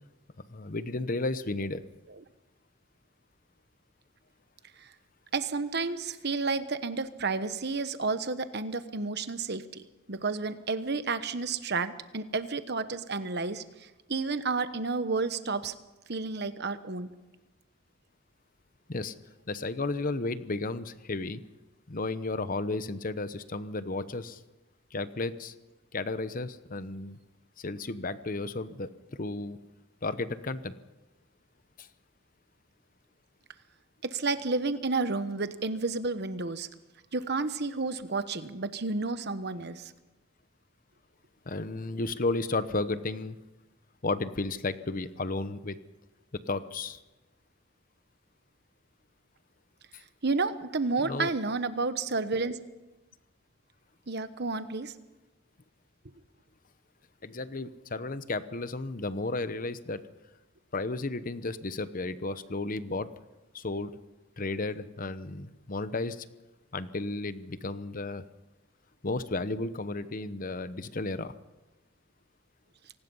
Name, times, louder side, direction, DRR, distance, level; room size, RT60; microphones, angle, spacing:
voice 1, 0.5-1.9 18.9-19.1 19.5-21.4 21.9-24.4 24.9-25.5 25.9-27.2 27.6-29.6 30.0-30.8 31.8-31.9 41.5-43.4 44.0-45.8 46.5-47.0 51.0-51.3 57.2-60.0 60.7-63.1 63.5-63.9 64.4-66.3 66.7-68.2 69.0-71.3, left 2 dB, 45° left, 13 dB, 0.9 m, -33 dB
voice 2, 5.3-9.8 10.1-15.7 16.1-17.1 34.0-36.7 37.1-39.9 50.2-52.6 54.1-54.9, right 3 dB, 55° right, 11 dB, 1.1 m, -31 dB
26.5 x 19.0 x 5.6 m, 1.1 s
head